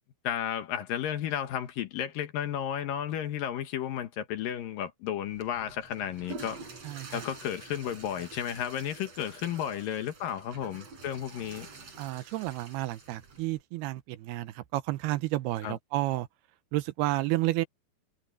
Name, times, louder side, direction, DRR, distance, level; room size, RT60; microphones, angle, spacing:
voice 1, 0.2-6.6 7.1-11.7 15.6-15.8, left 10 dB, 65° left, 2.5 m, -33 dB
Water / Toilet flush, 5.2-13.6, right 3 dB, 35° right, 5.4 m, -47 dB
voice 2, 6.8-7.2 12.0-16.3 16.7-17.7, right 17 dB, 75° right, 2.6 m, -31 dB
omnidirectional pair, 5.1 m